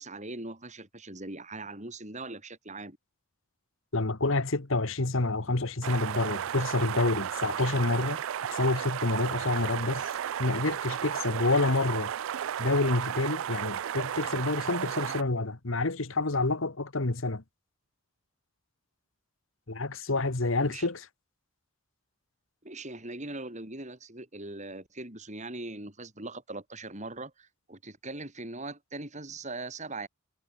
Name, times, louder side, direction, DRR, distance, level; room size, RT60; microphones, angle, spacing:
voice 1, 0.0-3.0 20.6-20.9 22.6-30.1, right 2 dB, 35° right, 5.7 m, -40 dB
voice 2, 3.9-8.2 8.5-10.1 10.4-12.1 12.6-17.4 19.7-21.0, left 2 dB, 70° left, 1.6 m, -28 dB
sound 1, 5.8-15.2, right 9 dB, 70° right, 0.4 m, -33 dB
head